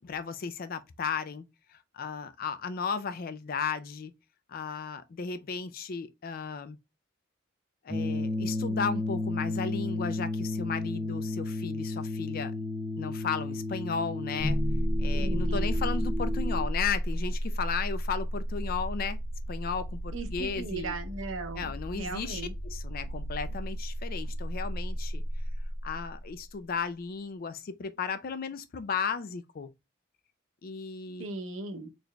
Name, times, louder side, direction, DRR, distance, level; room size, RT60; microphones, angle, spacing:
voice 1, 0.0-1.4 1.7-4.1 4.5-6.8 7.8-12.7 13.0-14.6 15.0-19.2 19.5-20.9 21.5-25.2 25.8-29.7 30.6-31.2, left 5 dB, 50° left, 0.4 m, -35 dB
sound 1, 7.9-16.6, left 2 dB, 25° right, 0.7 m, -33 dB
sound 2, 14.4-26.5, equal, 80° left, 1.4 m, -32 dB
voice 2, 15.1-15.7 20.1-22.5 31.2-31.9, right 3 dB, 90° right, 0.8 m, -37 dB
4.0 x 3.2 x 2.2 m
head